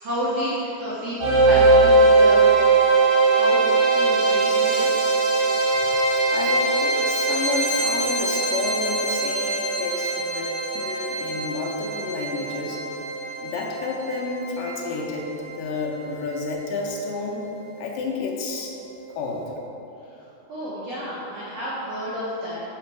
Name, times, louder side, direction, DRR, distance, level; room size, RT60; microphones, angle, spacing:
voice 1, 0.0-2.7 3.1-3.7 3.9-4.9 20.1-20.2 20.5-22.6, right 1 dB, 80° right, -8 dB, 1.4 m, -30 dB
sound 1, 1.2-16.2, right 3 dB, 55° right, 2.1 m, -21 dB
voice 2, 6.3-12.8 13.4-17.4 17.8-18.7 19.1-19.5, left 3 dB, 75° left, -1 dB, 2.2 m, -30 dB
6.5 x 5.1 x 4.6 m, 3.0 s
omnidirectional pair, 4.2 m